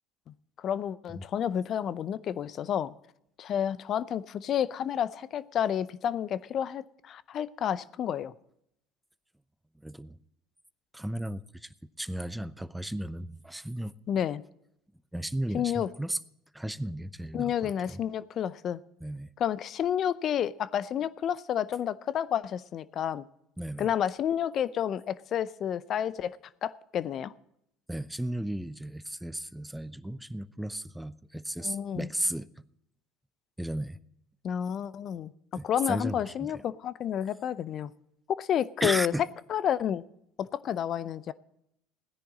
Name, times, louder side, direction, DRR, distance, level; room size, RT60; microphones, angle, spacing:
voice 1, 0.6-2.9 3.4-8.3 14.1-14.4 15.5-15.9 17.3-18.8 19.4-23.3 23.8-27.3 31.6-32.1 34.4-37.9 38.3-39.1 39.5-40.0 40.4-41.3, left 9 dB, 50° left, 18 dB, 0.6 m, -30 dB
voice 2, 9.8-10.2 10.9-11.7 12.0-13.9 15.1-16.2 16.5-18.0 19.0-19.3 23.6-23.9 27.9-32.5 33.6-34.0 35.5-36.6 38.8-39.2, right 1 dB, 5° right, 16 dB, 0.6 m, -35 dB
16.5 x 10.0 x 4.1 m, 0.78 s
hypercardioid pair, 75°, 0 cm